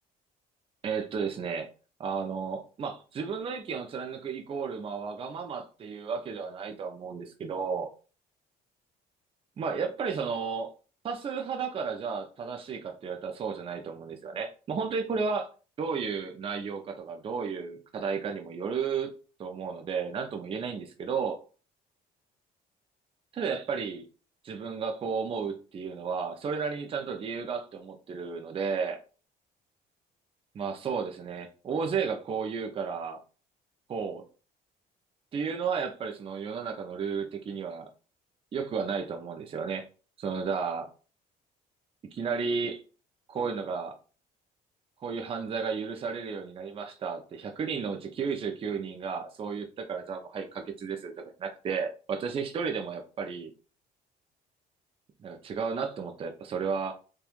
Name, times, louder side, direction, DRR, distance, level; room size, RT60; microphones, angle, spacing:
voice 1, 0.8-1.7 2.0-7.9 9.6-10.7 11.0-15.5 15.8-19.1 19.4-21.4 23.3-24.1 24.4-29.0 30.5-33.2 33.9-34.2 35.3-37.9 38.5-39.9 40.2-40.9 42.0-42.8 43.3-43.9 45.0-53.5 55.2-56.9, right 5 dB, 35° right, 0.5 m, -33 dB
3.0 x 2.3 x 2.4 m
cardioid pair, 110°, 17 cm